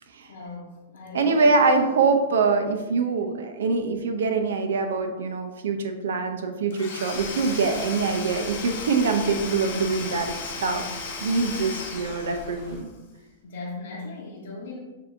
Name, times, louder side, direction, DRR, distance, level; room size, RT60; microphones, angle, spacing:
voice 1, 0.3-1.5 3.1-3.2 10.5-10.9 13.2-14.8, left 3 dB, 80° left, -6 dB, 1.0 m, -39 dB
voice 2, 1.1-10.3 10.6-10.9 11.2-12.9, right 4 dB, 85° right, 6 dB, 0.6 m, -24 dB
Domestic sounds home sounds / Tools, 6.7-12.8, left 4 dB, 55° left, 0.9 m, -36 dB
sound 1, 7.1-12.8, right 1 dB, ahead, 1.0 m, -45 dB
6.7 x 2.7 x 2.7 m, 1.2 s
hypercardioid pair, 155°, 0 cm